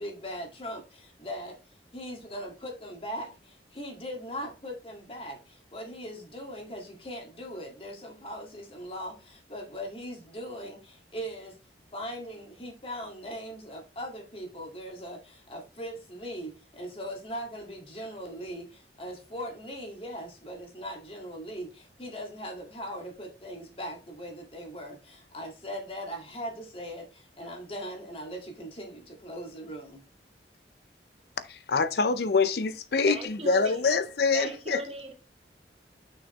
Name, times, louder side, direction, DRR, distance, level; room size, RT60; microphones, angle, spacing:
voice 1, 0.0-11.6 11.9-30.0, equal, 30° left, 1.9 m, -40 dB
voice 2, 31.5-34.8, left 4 dB, 60° left, 0.5 m, -25 dB
voice 3, 33.1-34.0 34.3-35.1, right 1 dB, 35° right, 1.7 m, -37 dB
6.4 x 6.2 x 3.1 m
head